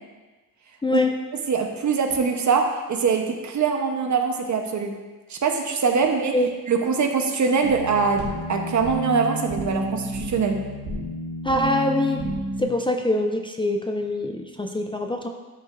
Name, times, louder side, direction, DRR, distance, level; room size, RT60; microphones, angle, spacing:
voice 1, 0.8-1.1 6.3-6.5 11.4-12.2 12.6-15.3, left 1 dB, 15° left, 3 dB, 0.4 m, -24 dB
voice 2, 1.5-4.9 5.3-6.3 6.7-10.6, right 5 dB, 55° right, 4 dB, 1.0 m, -23 dB
sound 1, 7.6-12.6, right 1 dB, 85° right, 1.8 m, -31 dB
12.0 x 5.2 x 2.6 m, 1.3 s
cardioid pair, 110°, 35 cm